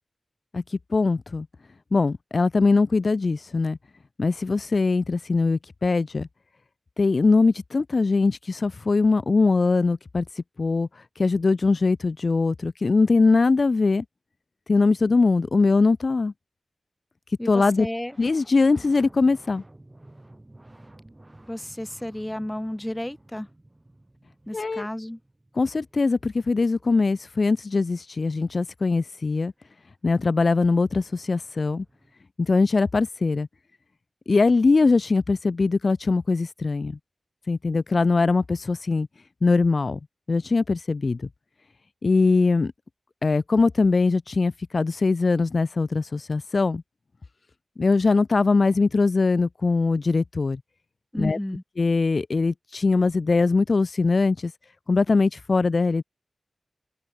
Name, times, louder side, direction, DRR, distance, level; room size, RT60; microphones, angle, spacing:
voice 1, 0.5-1.5 1.9-3.8 4.2-6.3 7.0-14.0 14.7-16.3 17.5-17.9 18.2-19.6 24.5-24.9 25.6-29.5 30.0-31.8 32.4-33.5 34.3-37.0 37.5-39.1 39.4-40.0 40.3-41.3 42.0-42.7 43.2-46.8 47.8-50.6 51.2-51.4 51.8-54.5 54.9-56.0, left 3 dB, 55° left, 0.3 m, -22 dB
voice 2, 17.4-18.2 21.4-23.5 24.5-25.2 51.1-51.6, left 1 dB, 10° left, 0.7 m, -32 dB
sound 1, 17.6-28.0 30.1-30.2 30.4-32.1, right 1 dB, 20° right, 2.7 m, -53 dB
open air
wide cardioid pair, 95°, 0 cm